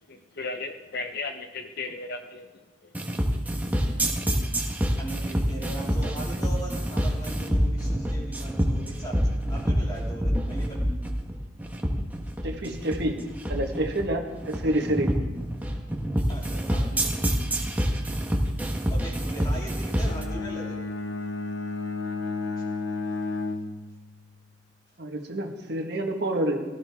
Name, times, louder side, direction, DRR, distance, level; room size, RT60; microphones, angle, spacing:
voice 1, 0.1-2.5 2.8-3.1, left 3 dB, 60° left, 6 dB, 0.8 m, -35 dB
sound 1, 2.9-20.2, equal, 10° right, 1.4 m, -26 dB
voice 2, 5.0-10.8 16.3-17.0 18.9-20.8 22.6-22.7, right 2 dB, 20° left, -4 dB, 3.4 m, -39 dB
voice 3, 12.4-13.2 13.5-15.1 25.0-26.6, right 1 dB, 65° right, 3 dB, 1.6 m, -28 dB
Bowed string instrument, 20.0-24.3, left 3 dB, 85° left, 0.9 m, -32 dB
17.5 x 13.0 x 3.6 m, 1.2 s
head